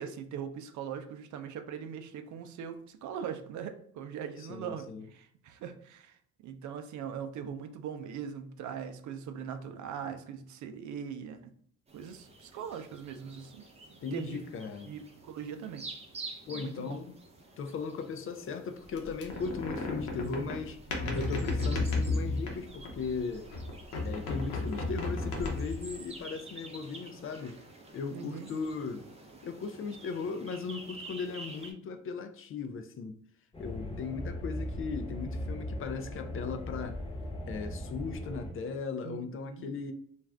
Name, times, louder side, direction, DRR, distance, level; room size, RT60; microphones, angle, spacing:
voice 1, 0.0-6.2 6.4-11.5 11.9-13.6 13.9-14.4 14.9-15.9 16.6-16.9 28.1-28.5 39.0-39.7, right 7 dB, 70° right, 0.5 m, -41 dB
voice 2, 4.4-5.1 14.0-15.0 16.5-17.2 17.6-20.8 21.1-23.5 24.0-27.6 27.9-29.1 29.4-33.2 33.6-37.0 37.5-39.9, left 5 dB, 45° left, 0.4 m, -37 dB
sound 1, 11.9-31.7, right 3 dB, 20° right, 0.6 m, -50 dB
sound 2, 19.0-23.1 23.5-25.9, left 2 dB, 85° left, 0.8 m, -33 dB
sound 3, 33.5-38.5, left 1 dB, 20° left, 1.0 m, -38 dB
2.5 x 2.3 x 3.2 m
cardioid pair, 90°, 30 cm